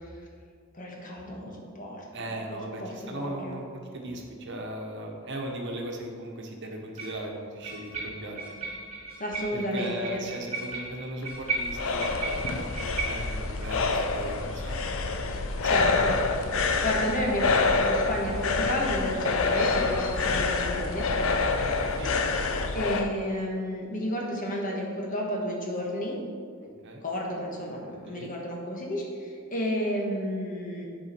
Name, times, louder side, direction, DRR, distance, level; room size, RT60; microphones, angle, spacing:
voice 1, 0.8-3.6 9.2-10.2 15.6-16.1 16.8-21.1 22.7-26.2 27.0-30.8, equal, 40° left, -1 dB, 1.5 m, -32 dB
voice 2, 2.1-8.5 9.5-15.7 20.2-20.4 21.6-22.2 26.8-27.0 28.1-28.3, right 1 dB, 60° right, 1 dB, 1.1 m, -38 dB
sound 1, 4.8-4.9 7.0-7.2 7.6-13.4, right 3 dB, 30° right, 2.2 m, -36 dB
sound 2, 11.2-23.1, left 3 dB, 70° left, 0.6 m, -27 dB
10.0 x 4.8 x 4.4 m, 2.2 s
head